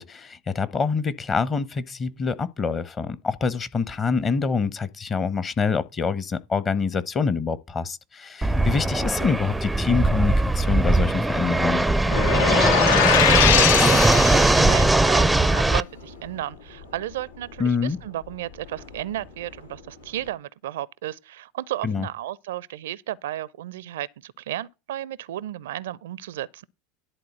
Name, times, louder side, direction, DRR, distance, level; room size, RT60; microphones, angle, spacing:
voice 1, 0.0-11.9 17.6-18.0 21.8-22.1, left 5 dB, 30° left, 0.9 m, -26 dB
Fixed-wing aircraft airplane, 8.4-15.8, right 2 dB, 5° right, 0.5 m, -20 dB
sound 1, 12.1-14.9, left 10 dB, 65° left, 0.5 m, -21 dB
voice 2, 13.1-26.6, right 13 dB, 65° right, 0.4 m, -33 dB
sound 2, 14.8-20.3, left 3 dB, 90° left, 1.8 m, -46 dB
11.0 x 4.1 x 7.7 m
figure-of-eight pair, 80°, 0 cm